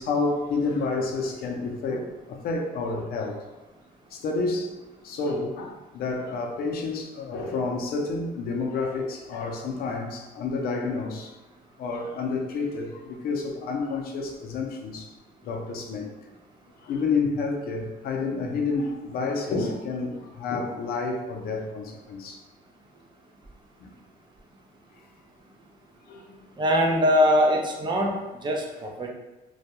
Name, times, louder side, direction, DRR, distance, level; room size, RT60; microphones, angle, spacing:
voice 1, 0.0-3.5 4.1-4.8 5.0-11.3 11.8-15.1 15.4-16.1 16.8-22.4 23.8-23.9 26.1-26.3, left 3 dB, 65° left, 2 dB, 0.5 m, -29 dB
voice 2, 26.6-28.1 28.4-29.1, equal, 25° right, 0 dB, 0.5 m, -22 dB
2.2 x 2.2 x 2.8 m, 1.1 s
cardioid pair, 110°, 17 cm